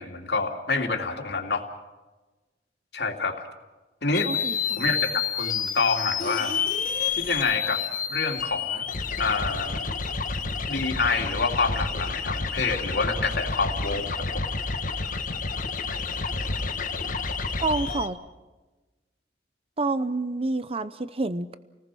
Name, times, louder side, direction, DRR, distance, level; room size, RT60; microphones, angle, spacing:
voice 1, 0.0-1.6 2.9-3.4 4.0-4.3 4.8-6.6 7.1-7.8 8.1-8.9 9.2-9.8 10.7-14.1 14.3-14.4, left 4 dB, 70° left, 2 dB, 2.9 m, -27 dB
sound 1, 4.1-18.1, left 5 dB, 50° left, 1.7 m, -29 dB
voice 2, 4.3-4.9 17.6-18.2 19.8-21.6, right 3 dB, 35° right, 13 dB, 0.7 m, -28 dB
28.5 x 19.5 x 6.2 m, 1.2 s
head